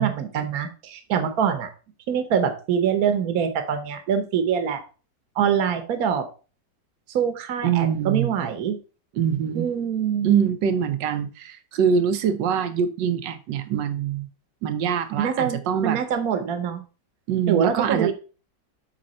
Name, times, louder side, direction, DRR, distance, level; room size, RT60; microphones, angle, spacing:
voice 1, 0.0-1.7 2.1-4.8 5.4-6.2 7.1-8.8 9.5-10.3 15.2-16.8 17.5-18.1, right 8 dB, 60° right, 7 dB, 1.4 m, -24 dB
voice 2, 7.6-8.3 9.2-9.7 10.2-14.3 14.6-16.0 17.3-18.1, right 8 dB, 80° right, 10 dB, 1.4 m, -24 dB
7.8 x 4.1 x 4.2 m, 0.34 s
omnidirectional pair, 1.9 m